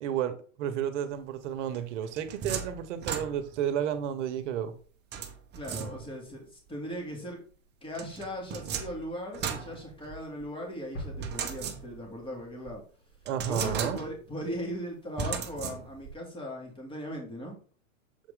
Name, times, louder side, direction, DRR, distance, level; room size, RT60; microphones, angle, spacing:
voice 1, 0.0-4.7 13.2-14.0, right 9 dB, 60° right, 1.2 m, -32 dB
sound 1, 1.7-3.7 5.1-6.3 7.9-10.5 11.2-12.2 12.7-12.8 13.3-14.3 15.2-16.2, right 7 dB, 25° right, 1.0 m, -36 dB
voice 2, 5.5-7.4 7.8-12.8 13.5-17.6, equal, 15° left, 2.4 m, -38 dB
sound 2, 10.9-12.8, right 1 dB, 45° left, 3.4 m, -43 dB
7.0 x 4.5 x 3.8 m
hypercardioid pair, 120°, 40 cm